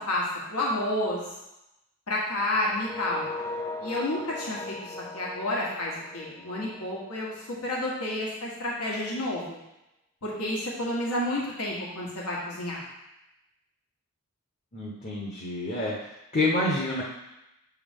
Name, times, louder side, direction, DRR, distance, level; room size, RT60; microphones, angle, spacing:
voice 1, 0.5-1.2 2.1-3.3 3.8-7.3 7.6-9.6 10.2-12.8, left 1 dB, 85° left, -4 dB, 1.4 m, -30 dB
sound 1, 2.8-7.6, left 2 dB, 10° left, 0.4 m, -39 dB
voice 2, 14.7-16.1 16.3-17.0, left 2 dB, 35° left, -5 dB, 0.8 m, -28 dB
7.5 x 3.5 x 3.6 m, 0.91 s
head